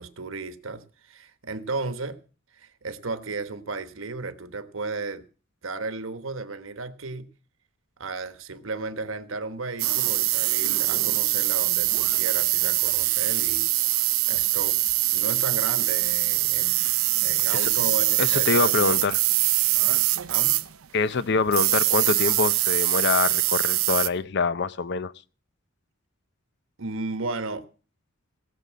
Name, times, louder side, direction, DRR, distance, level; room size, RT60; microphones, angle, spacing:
voice 1, 0.0-2.2 2.6-5.2 5.6-7.3 8.0-14.0 14.3-14.8 15.1-16.8 17.2-19.0 20.3-20.6 26.8-27.7, right 3 dB, 70° right, 1.2 m, -34 dB
sound 1, 9.8-20.7 21.4-24.1, right 17 dB, 90° right, 0.7 m, -23 dB
voice 2, 18.2-19.2 20.9-25.1, left 4 dB, 55° left, 0.6 m, -25 dB
17.5 x 6.8 x 7.4 m
head